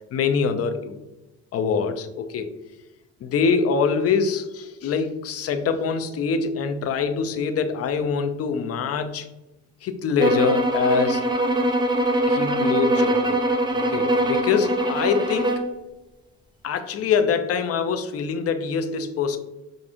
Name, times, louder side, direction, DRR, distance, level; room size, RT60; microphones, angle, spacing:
voice 1, 0.1-1.0 1.5-2.5 3.2-9.3 9.8-11.2 12.3-13.4 13.7-15.6 16.6-19.4, left 6 dB, 55° left, 8 dB, 0.5 m, -24 dB
sound 1, 10.2-15.7, right 1 dB, 15° right, 0.5 m, -22 dB
4.9 x 2.6 x 2.5 m, 1.0 s
cardioid pair, 90°, 30 cm